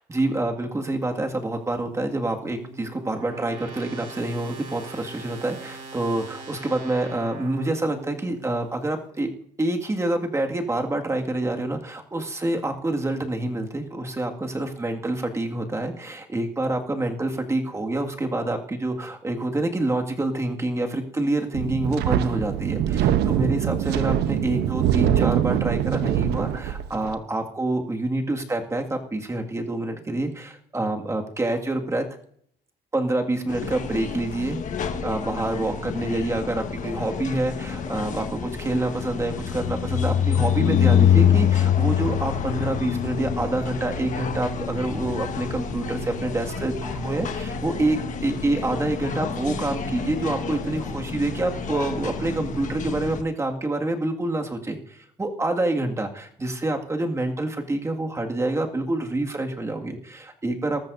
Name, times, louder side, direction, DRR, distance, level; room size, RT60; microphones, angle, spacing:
voice 1, 0.1-9.3 9.6-32.0 32.9-34.6 35.0-60.8, right 2 dB, 15° right, 2 dB, 2.0 m, -27 dB
sound 1, 1.7-8.8, right 3 dB, 55° right, 5.2 m, -42 dB
Wind, 21.5-27.1, right 11 dB, 80° right, 0.9 m, -23 dB
sound 2, 33.5-53.2, left 8 dB, 50° left, 1.4 m, -26 dB
20.0 x 13.5 x 2.7 m, 0.65 s
cardioid pair, 110°, 17 cm